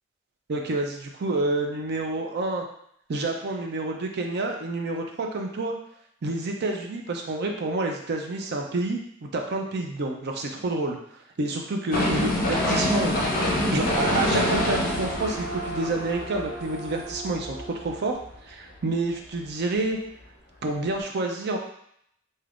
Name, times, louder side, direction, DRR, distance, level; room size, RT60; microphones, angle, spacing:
voice 1, 0.5-2.7 3.1-5.7 6.2-11.0 11.4-18.2 18.4-20.0 20.6-21.6, right 2 dB, 55° right, 2 dB, 0.5 m, -28 dB
sound 1, 11.9-17.9 18.3-18.4, left 1 dB, 45° left, 0.6 m, -26 dB
sound 2, 12.5-18.0, right 2 dB, 35° right, 1.1 m, -36 dB
3.4 x 2.7 x 2.4 m, 0.70 s
head